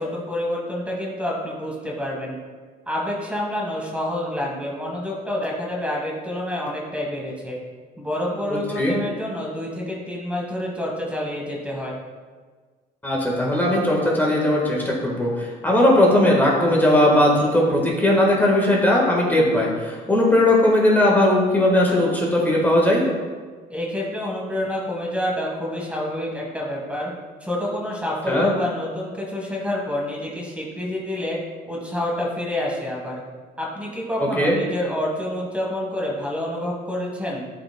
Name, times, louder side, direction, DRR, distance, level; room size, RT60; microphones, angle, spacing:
voice 1, 0.0-2.4 2.9-7.6 8.0-12.0 23.7-27.1 27.4-31.4 31.7-33.2 33.6-37.5, left 1 dB, 10° right, -3 dB, 1.5 m, -28 dB
voice 2, 13.0-23.0 28.3-28.5 34.2-34.6, left 1 dB, 10° left, -3 dB, 1.4 m, -18 dB
11.5 x 5.0 x 2.2 m, 1.5 s
cardioid pair, 110°, 17 cm